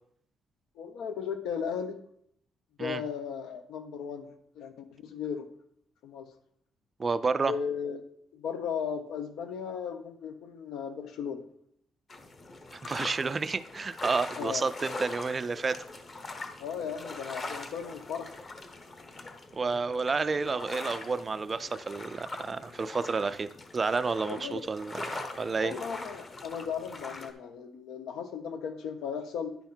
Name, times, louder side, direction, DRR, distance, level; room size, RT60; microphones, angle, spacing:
voice 1, 0.7-2.0 2.8-5.5 6.0-6.3 7.4-8.0 8.3-11.4 14.4-14.6 16.6-18.3 24.2-24.6 25.6-29.6, left 7 dB, 85° left, 7 dB, 1.2 m, -36 dB
voice 2, 7.0-7.5 12.7-15.8 19.5-25.8, right 4 dB, 25° right, 13 dB, 0.3 m, -30 dB
sound 1, 12.1-27.3, left 2 dB, 25° left, 1.0 m, -42 dB
10.5 x 5.7 x 4.4 m, 0.67 s
cardioid pair, 175°, 0 cm